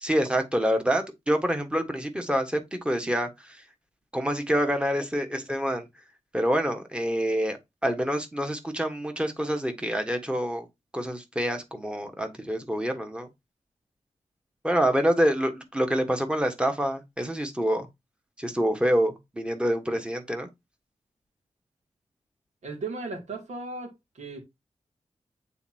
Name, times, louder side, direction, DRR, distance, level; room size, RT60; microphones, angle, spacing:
voice 1, 0.0-3.6 4.1-5.9 6.3-10.7 10.9-13.3 14.6-17.9 18.4-20.5, equal, 10° right, 1.3 m, -26 dB
voice 2, 22.6-24.4, right 3 dB, 80° right, 2.6 m, -36 dB
8.2 x 4.2 x 2.8 m
wide cardioid pair, 130°, 12 cm